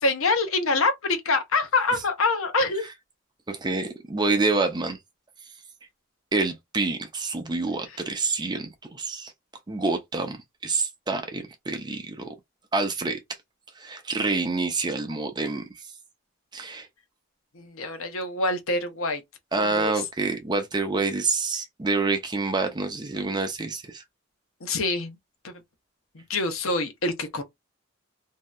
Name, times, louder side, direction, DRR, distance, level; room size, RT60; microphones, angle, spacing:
voice 1, 0.0-2.9 7.9-8.0 17.5-19.2 19.6-20.0 24.6-25.2 25.4-25.6 26.1-27.4, left 3 dB, 75° left, 0.7 m, -26 dB
voice 2, 3.5-5.0 6.3-9.3 9.7-10.4 10.6-12.3 12.7-13.2 13.8-15.6 16.5-16.9 19.5-24.0, right 3 dB, 20° right, 0.5 m, -27 dB
3.1 x 2.7 x 2.3 m
head